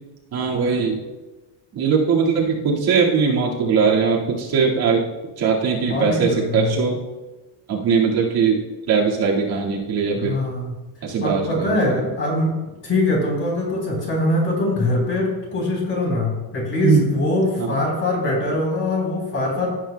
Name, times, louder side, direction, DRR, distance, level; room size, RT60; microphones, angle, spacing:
voice 1, 0.3-1.0 1.8-5.0 5.4-7.0 7.7-8.6 8.9-10.3 11.0-11.9 16.8-17.0 17.6-17.8, right 5 dB, 55° right, -4 dB, 2.0 m, -20 dB
voice 2, 5.9-6.8 10.1-10.7 11.2-12.5 12.8-19.7, left 2 dB, 30° left, -2 dB, 3.8 m, -22 dB
16.5 x 8.8 x 2.2 m, 1.1 s
cardioid pair, 170°, 45 cm